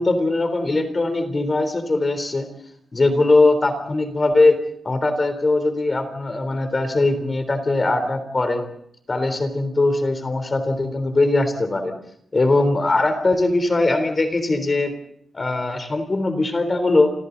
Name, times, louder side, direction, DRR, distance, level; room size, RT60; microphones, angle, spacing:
voice 1, 0.0-2.5 2.9-4.6 4.8-8.6 9.1-11.9 12.3-14.9 15.3-17.1, left 2 dB, 25° left, 9 dB, 3.7 m, -20 dB
29.0 x 28.5 x 4.0 m, 0.69 s
wide cardioid pair, 175°, 0 cm